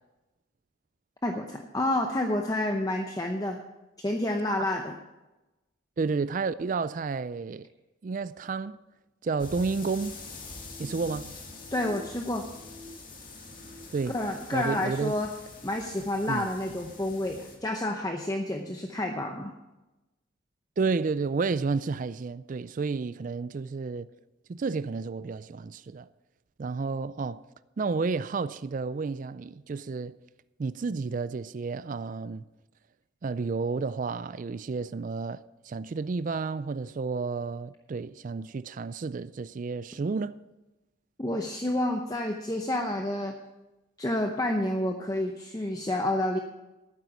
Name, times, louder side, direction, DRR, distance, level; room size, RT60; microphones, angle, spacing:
voice 1, 1.2-3.6 4.0-5.0 11.7-12.5 14.1-15.3 15.6-19.5 41.2-43.3 44.0-46.4, left 1 dB, 20° left, 0.7 m, -29 dB
voice 2, 6.0-7.7 8.0-8.8 9.2-10.2 10.8-11.3 13.9-14.2 14.5-15.1 16.3-16.5 20.8-24.1 24.5-26.1 26.6-27.5 27.8-30.2 30.6-32.5 33.2-40.3, right 4 dB, 40° right, 0.3 m, -31 dB
sound 1, 9.4-17.6, left 3 dB, 45° left, 2.3 m, -45 dB
sound 2, 10.2-12.0 12.3-13.9 14.3-14.7, left 2 dB, 15° right, 3.6 m, -50 dB
12.0 x 9.3 x 6.0 m
head